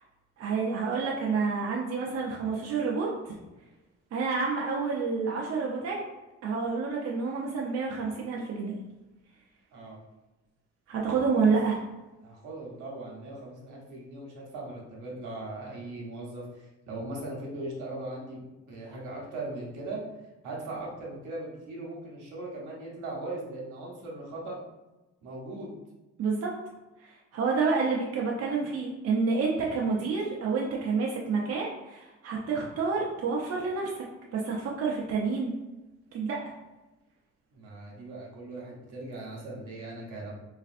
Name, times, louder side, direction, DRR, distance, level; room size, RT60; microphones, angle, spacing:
voice 1, 0.4-3.4 4.1-6.0 6.4-8.8 10.9-11.8 26.2-26.5 27.0-34.0 34.3-35.5 36.1-36.4, right 4 dB, 55° right, -3 dB, 0.6 m, -29 dB
voice 2, 12.2-20.0 20.4-24.6 25.2-25.7 37.5-40.3, right 2 dB, 80° right, -2 dB, 1.0 m, -39 dB
3.2 x 2.5 x 2.5 m, 1.1 s
cardioid pair, 90°, 30 cm